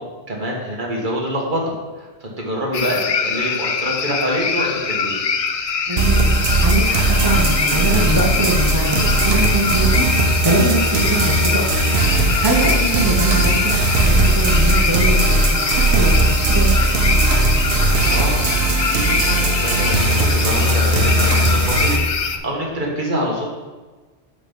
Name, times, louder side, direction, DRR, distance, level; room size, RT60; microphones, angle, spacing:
voice 1, 0.0-5.2 17.8-18.5 18.9-20.1 20.4-23.5, equal, 45° right, -2 dB, 1.7 m, -26 dB
sound 1, 2.7-22.4, left 6 dB, 55° left, 0.4 m, -23 dB
voice 2, 5.9-10.0 10.4-11.7 12.2-16.8, right 1 dB, 20° right, -2 dB, 0.8 m, -22 dB
sound 2, 6.0-22.0, right 2 dB, 70° right, 1.1 m, -18 dB
6.0 x 5.1 x 5.3 m, 1.3 s
omnidirectional pair, 1.1 m